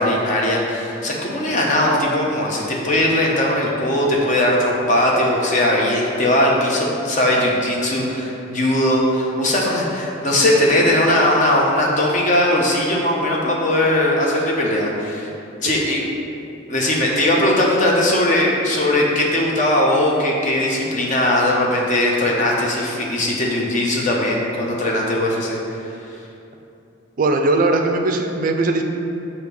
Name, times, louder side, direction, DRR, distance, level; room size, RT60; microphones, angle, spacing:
voice 1, 0.0-15.3 15.6-16.0 16.7-25.6, left 1 dB, 35° left, -2 dB, 0.8 m, -19 dB
voice 2, 27.2-28.8, right 2 dB, 40° right, 4 dB, 0.4 m, -19 dB
6.3 x 2.9 x 5.2 m, 2.8 s
head